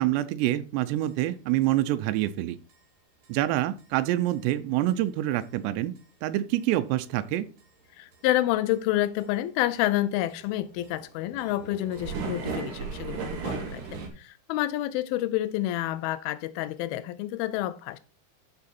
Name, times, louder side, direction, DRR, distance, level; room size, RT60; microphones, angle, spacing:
voice 1, 0.0-2.6 3.3-7.4, right 14 dB, 85° right, 2.8 m, -26 dB
sound 1, 1.1-1.2 1.6-1.7 2.2-2.3 2.7-2.8 3.2-3.3 3.8-3.9 4.3-4.4 4.9-5.0 5.4-5.5 6.0-6.1 6.5-6.6 7.0-7.1 7.6-7.7 8.1-8.2 8.7-8.9 9.2-9.3 9.6-14.1, right 5 dB, 55° right, 2.6 m, -36 dB
voice 2, 8.0-18.0, left 14 dB, 85° left, 2.1 m, -29 dB
13.0 x 4.8 x 4.2 m
omnidirectional pair, 4.9 m